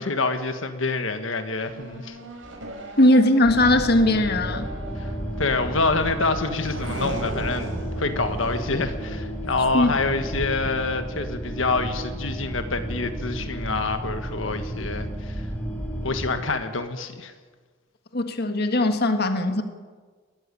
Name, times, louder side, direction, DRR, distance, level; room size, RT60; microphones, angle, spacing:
voice 1, 0.0-2.2 5.0-5.1 5.4-15.4 16.0-17.3, left 3 dB, 85° left, 8 dB, 1.5 m, -27 dB
Race car auto racing / Accelerating revving vroom, 1.7-10.7, right 1 dB, 80° right, 5.2 m, -37 dB
voice 2, 3.0-4.7 9.7-9.9 18.1-19.6, left 1 dB, 55° left, 7 dB, 1.6 m, -19 dB
sound 1, 3.4-16.4, equal, 5° left, 4.0 m, -32 dB
21.0 x 14.0 x 9.9 m, 1.5 s
head